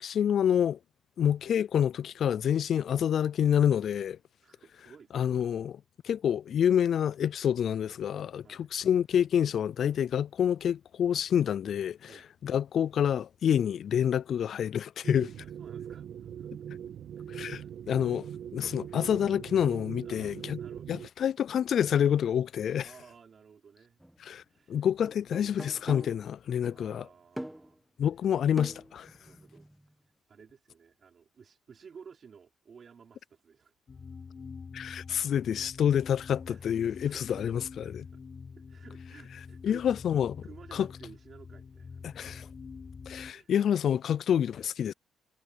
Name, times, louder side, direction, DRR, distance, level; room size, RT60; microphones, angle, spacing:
voice 1, 0.0-0.8 1.2-4.2 5.1-5.8 6.0-12.1 12.4-15.3 17.3-18.3 18.5-20.6 20.9-22.9 24.2-24.4 24.7-27.1 28.0-29.1 34.7-38.1 39.6-40.4 40.7-40.9 42.0-42.5 43.1-44.9, left 9 dB, 60° left, 0.3 m, -27 dB
voice 2, 4.4-5.3 8.4-8.7 12.1-12.3 15.4-16.5 17.2-17.7 20.0-20.9 22.8-24.0 24.5-24.8 26.6-27.8 29.1-29.7 30.3-33.7 36.5-36.7 37.0-37.5 37.8-38.2 38.6-39.8 40.4-42.3 43.2-43.5, right 6 dB, 45° right, 4.5 m, -54 dB
sound 1, 15.0-21.1, right 9 dB, 70° right, 1.8 m, -41 dB
sound 2, 24.0-24.2 25.0-26.3 27.4-27.8 28.6-29.9, right 1 dB, 5° right, 1.2 m, -42 dB
sound 3, 33.9-43.3, left 5 dB, 40° left, 4.9 m, -46 dB
cardioid pair, 90°, 0 cm